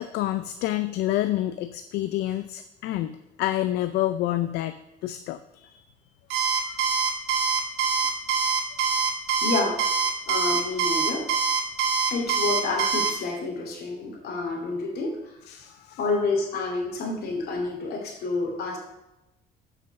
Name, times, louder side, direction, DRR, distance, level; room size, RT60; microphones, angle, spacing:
voice 1, 0.0-4.7 5.0-5.8 6.7-6.8 15.5-16.0, left 14 dB, 80° left, 10 dB, 0.5 m, -28 dB
Alarm, 6.3-13.1, right 5 dB, 90° right, 1.3 m, -24 dB
voice 2, 9.4-9.8 10.3-11.3 12.1-15.3 16.0-18.8, left 3 dB, 65° left, 0 dB, 2.6 m, -28 dB
6.8 x 5.8 x 6.5 m, 0.90 s
cardioid pair, 110°, 17 cm